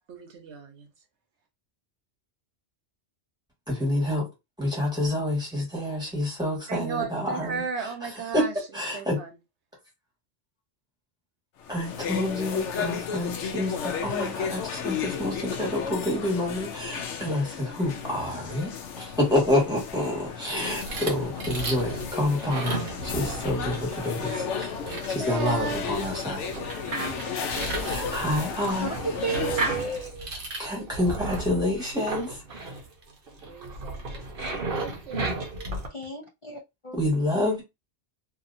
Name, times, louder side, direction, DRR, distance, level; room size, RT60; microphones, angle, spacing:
voice 1, 0.1-0.9 6.7-8.5 8.9-9.3 25.2-25.9 33.4-34.0 34.7-35.5, right 4 dB, 75° right, 1.1 m, -34 dB
voice 2, 3.7-4.3 4.6-9.2 11.7-26.5 27.8-28.9 30.6-32.8 36.9-37.6, left 1 dB, 5° right, 1.5 m, -28 dB
sound 1, 11.6-30.1, left 6 dB, 90° left, 0.9 m, -34 dB
sound 2, 20.4-35.9, right 2 dB, 55° right, 0.9 m, -35 dB
voice 3, 28.8-30.3 35.9-37.0, right 4 dB, 40° left, 0.4 m, -33 dB
2.8 x 2.7 x 2.6 m
omnidirectional pair, 1.2 m